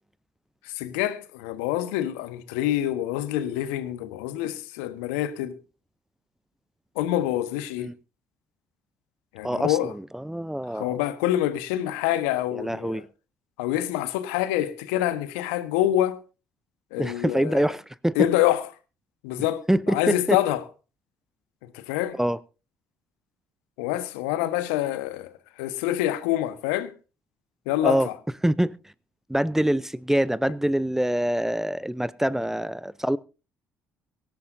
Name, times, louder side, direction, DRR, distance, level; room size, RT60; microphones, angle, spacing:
voice 1, 0.7-5.6 6.9-7.9 9.3-9.9 10.7-13.0 13.6-16.2 16.9-17.6 18.1-18.6 19.2-20.6 21.6-22.2 23.8-25.3 25.6-26.9 27.7-28.1, left 13 dB, 75° left, 1.2 m, -26 dB
voice 2, 9.4-11.0 12.5-13.1 17.0-18.2 19.7-20.4 22.2-22.4 27.8-28.1 28.4-28.7 29.3-33.2, right 1 dB, 5° right, 0.6 m, -25 dB
23.0 x 12.0 x 2.7 m
hypercardioid pair, 50°, 8 cm